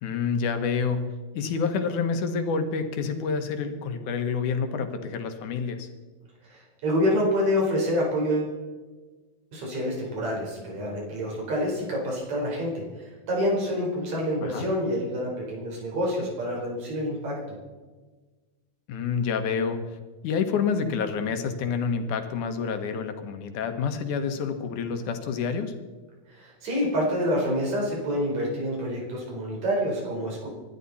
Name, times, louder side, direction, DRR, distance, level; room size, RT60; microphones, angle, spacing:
voice 1, 0.0-1.0 1.3-5.9 14.4-14.7 18.9-19.8 20.2-25.8, left 5 dB, 85° left, 7 dB, 2.9 m, -28 dB
voice 2, 6.4-8.5 9.5-17.3 26.3-30.5, equal, 65° right, -2 dB, 5.9 m, -27 dB
25.5 x 12.0 x 4.2 m, 1.3 s
omnidirectional pair, 3.4 m